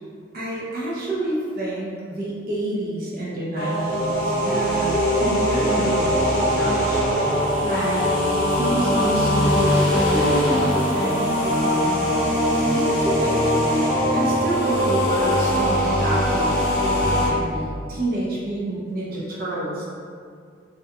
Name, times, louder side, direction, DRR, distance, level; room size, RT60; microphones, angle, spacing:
voice 1, 0.3-7.0 7.6-8.1 8.5-12.1 12.7-13.5 13.9-19.8, right 1 dB, 50° right, -6 dB, 0.5 m, -28 dB
sound 1, 3.6-17.3, equal, 55° left, 0.5 m, -21 dB
sound 2, 8.8-13.7, equal, 85° right, 0.8 m, -38 dB
2.4 x 2.2 x 2.7 m, 2.2 s
head